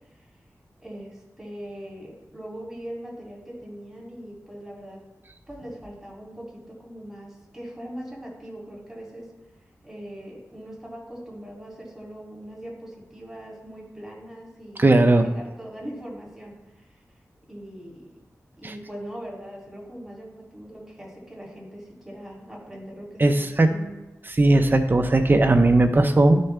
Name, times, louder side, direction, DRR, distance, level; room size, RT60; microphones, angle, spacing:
voice 1, 0.8-5.0 5.5-9.3 9.8-17.0 17.5-18.1 18.6-23.9, equal, 5° right, -4 dB, 2.8 m, -40 dB
voice 2, 14.8-15.3 23.2-23.7 24.4-26.4, right 2 dB, 35° right, 6 dB, 0.8 m, -17 dB
11.5 x 5.3 x 3.4 m, 0.98 s
wide cardioid pair, 85°, 6 cm